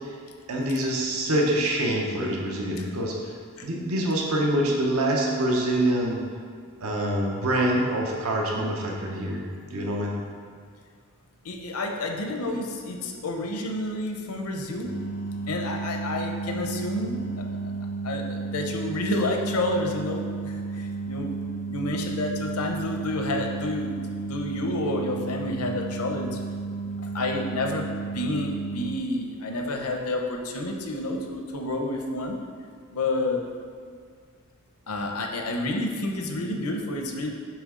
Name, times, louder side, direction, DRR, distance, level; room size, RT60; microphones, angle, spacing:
voice 1, 0.5-3.1 3.6-6.2 6.8-10.1, right 1 dB, 75° right, -1 dB, 0.9 m, -25 dB
voice 2, 11.4-14.9 15.5-17.2 18.0-26.4 27.1-32.4 32.9-33.4 34.9-37.3, left 2 dB, 75° left, 2 dB, 0.7 m, -30 dB
sound 1, 14.8-29.0, right 4 dB, 45° left, 0.5 m, -33 dB
7.5 x 3.5 x 3.7 m, 2.1 s
head